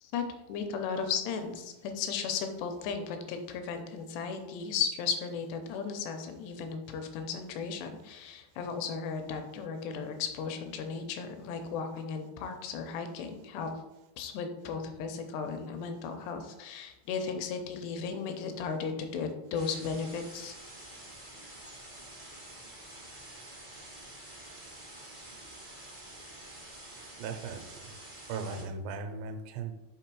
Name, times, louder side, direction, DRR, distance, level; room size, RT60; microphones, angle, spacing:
voice 1, 0.0-13.7 14.2-20.5, left 6 dB, 80° left, 6 dB, 2.5 m, -35 dB
sound 1, 19.5-28.6, right 1 dB, 60° right, 0.5 m, -48 dB
voice 2, 27.2-27.8 28.3-29.7, right 4 dB, 85° right, 6 dB, 2.9 m, -37 dB
6.6 x 3.8 x 4.6 m, 1.0 s
omnidirectional pair, 5.1 m